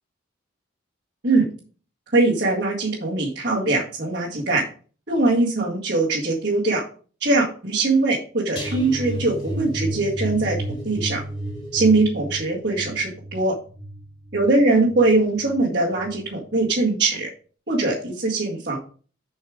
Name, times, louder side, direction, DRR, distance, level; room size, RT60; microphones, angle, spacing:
voice 1, 2.1-4.6 5.1-6.8 7.2-10.6 10.8-11.2 11.7-13.5 14.3-17.3 17.7-18.8, right 2 dB, 55° right, -7 dB, 2.0 m, -21 dB
sound 1, 8.6-15.6 16.0-16.3 16.6-16.7, right 1 dB, 25° left, 3.6 m, -32 dB
7.4 x 5.5 x 5.0 m, 0.40 s
head